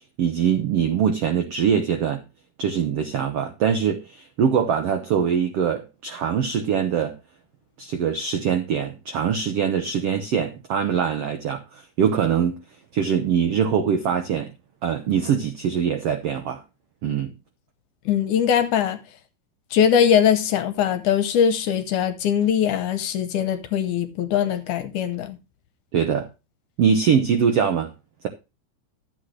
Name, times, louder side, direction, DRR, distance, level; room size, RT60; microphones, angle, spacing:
voice 1, 0.2-2.2 2.6-7.2 7.8-12.6 12.9-14.5 14.8-16.6 17.0-17.3 25.9-26.3 26.8-27.9, right 7 dB, 80° right, 1.4 m, -23 dB
voice 2, 18.1-19.0 19.7-25.4, left 8 dB, 70° left, 2.2 m, -21 dB
12.0 x 8.2 x 3.2 m
omnidirectional pair, 4.1 m